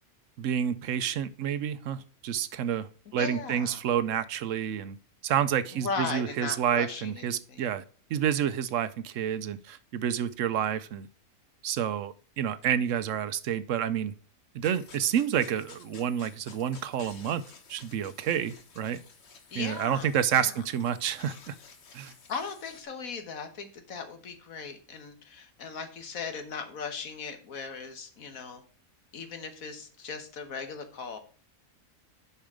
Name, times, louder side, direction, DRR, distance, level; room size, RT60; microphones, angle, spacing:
voice 1, 0.4-5.0 5.2-7.8 8.1-11.1 11.6-14.1 14.5-17.4 17.7-19.0 19.6-21.6 21.9-22.1, right 9 dB, 70° right, 15 dB, 0.9 m, -29 dB
voice 2, 3.2-3.8 5.7-7.6 19.5-20.6 22.3-28.6 29.1-31.2, left 5 dB, 80° left, 8 dB, 1.7 m, -38 dB
sound 1, 14.6-22.8, left 5 dB, 55° left, 1.3 m, -53 dB
6.9 x 5.6 x 4.9 m, 0.40 s
omnidirectional pair, 1.4 m